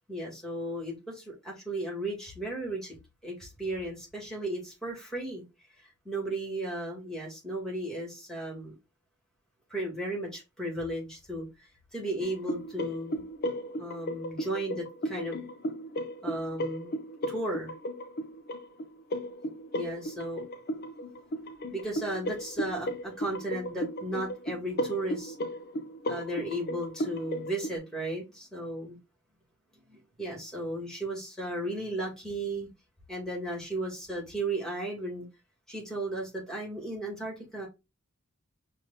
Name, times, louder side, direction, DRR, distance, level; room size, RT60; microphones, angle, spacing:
voice 1, 0.1-2.9 3.2-5.4 5.8-8.7 9.7-13.2 13.8-15.4 16.2-17.0 17.3-17.7 19.7-20.4 21.7-25.3 26.1-29.0 29.9-32.7 33.1-35.3 35.7-37.7, right 1 dB, 5° left, -2 dB, 2.1 m, -35 dB
sound 1, 12.2-27.7, equal, 45° left, 0.5 m, -35 dB
4.9 x 2.6 x 4.0 m, 0.24 s
head